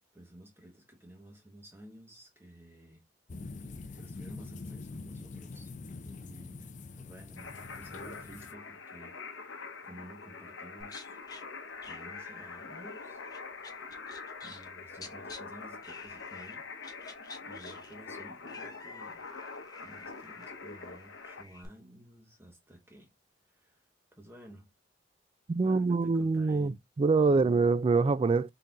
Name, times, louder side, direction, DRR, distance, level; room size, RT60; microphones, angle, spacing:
voice 1, 0.1-3.1 4.0-5.7 6.1-11.2 11.8-13.2 14.4-16.7 17.5-19.3 19.8-23.1 23.5-24.7 25.6-26.8 27.2-27.6, right 1 dB, 15° right, 0.9 m, -53 dB
sound 1, 3.3-8.5, left 3 dB, 40° left, 0.5 m, -44 dB
sound 2, 7.4-21.4, left 4 dB, 80° left, 0.9 m, -44 dB
sound 3, 10.8-11.4 11.8-14.7 14.9-15.4 15.8-16.5 16.8-21.7, left 3 dB, 20° left, 0.9 m, -50 dB
voice 2, 25.5-28.5, right 4 dB, 30° right, 0.3 m, -25 dB
4.1 x 3.7 x 2.2 m
head